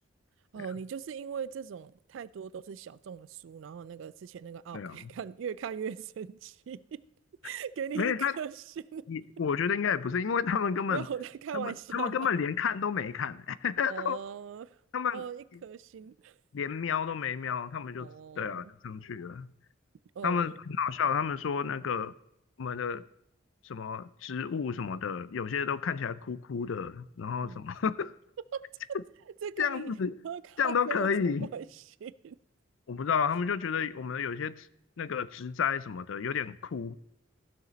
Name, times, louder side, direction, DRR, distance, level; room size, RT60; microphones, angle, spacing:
voice 1, 0.5-7.1 7.4-9.1 10.9-12.3 13.9-14.8 15.1-16.3 18.0-18.7 20.2-20.6 27.4-27.6 28.5-28.6 29.4-29.9 30.2-31.7 32.0-32.4, right 7 dB, 70° right, 0.3 m, -39 dB
voice 2, 4.7-5.1 8.0-8.3 9.1-11.1 11.5-14.2 14.9-15.2 16.5-18.1 18.4-19.5 20.2-22.1 22.6-23.0 23.6-28.1 28.9-29.0 29.6-30.2 30.6-31.5 32.9-34.7 35.0-37.0, left 6 dB, 70° left, 0.4 m, -31 dB
15.0 x 6.5 x 4.0 m
head